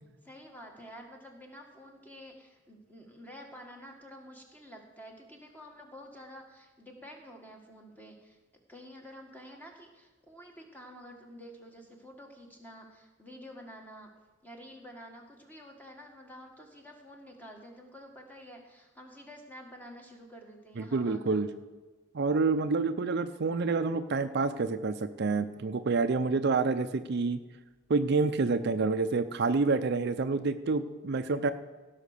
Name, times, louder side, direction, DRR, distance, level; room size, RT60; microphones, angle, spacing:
voice 1, 0.2-8.4 8.7-14.1 14.4-21.4, equal, 10° left, 2 dB, 1.8 m, -49 dB
voice 2, 20.8-21.5 22.1-27.4 27.9-31.5, right 4 dB, 60° right, 10 dB, 0.5 m, -28 dB
16.5 x 5.8 x 6.6 m, 1.2 s
head